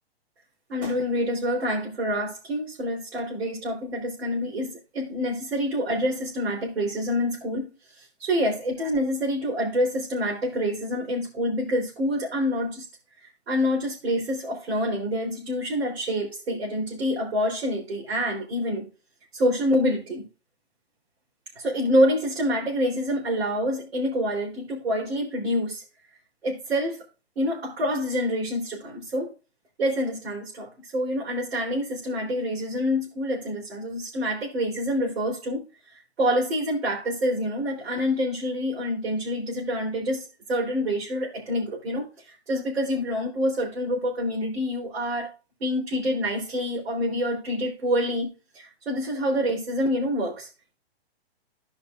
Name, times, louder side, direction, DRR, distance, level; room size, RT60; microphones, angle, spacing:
voice 1, 0.7-12.9 13.2-18.9 19.3-20.3 21.6-25.8 26.4-27.0 27.4-29.3 29.8-45.3 45.6-48.3 48.5-50.5, equal, 80° right, 3.6 m, -27 dB
15.0 x 5.1 x 2.5 m
hypercardioid pair, 150°, 31 cm